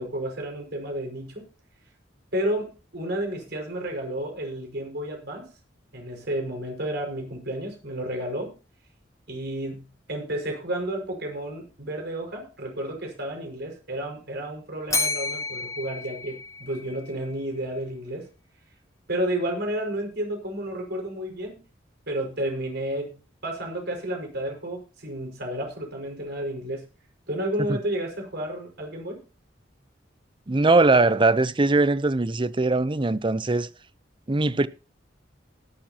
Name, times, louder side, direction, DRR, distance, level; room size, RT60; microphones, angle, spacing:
voice 1, 0.0-1.5 2.3-5.5 5.9-8.5 9.3-18.3 19.1-21.6 22.1-26.9 27.3-29.2, right 1 dB, 60° right, 5.5 m, -31 dB
Bell, 14.9-17.1, left 2 dB, 20° left, 3.2 m, -30 dB
voice 2, 30.5-33.7 34.3-34.7, right 3 dB, 25° right, 0.7 m, -21 dB
18.0 x 11.5 x 2.9 m
head